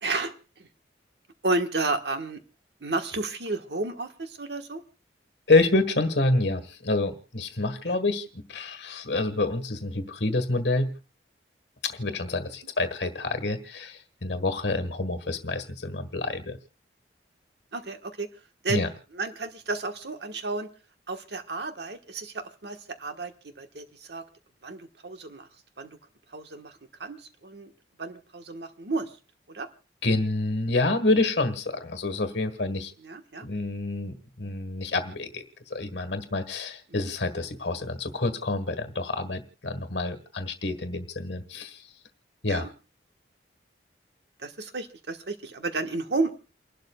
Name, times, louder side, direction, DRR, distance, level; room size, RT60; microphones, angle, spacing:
voice 1, 0.0-0.3 0.6-0.7 1.4-2.4 2.8-4.8 7.9-8.0 17.7-18.3 18.6-18.8 19.1-20.7 21.1-24.2 24.6-25.5 25.8-26.0 26.3-27.7 28.0-29.1 29.5-29.7 33.0-33.5 36.9-37.0 42.5-42.7 44.4-46.4, right 3 dB, 70° right, 6 dB, 1.3 m, -32 dB
voice 2, 5.5-10.9 11.8-16.6 18.7-18.9 30.0-32.9 33.4-41.8 42.4-42.7, left 2 dB, 75° left, 10 dB, 1.6 m, -27 dB
29.5 x 12.0 x 2.3 m, 0.33 s
head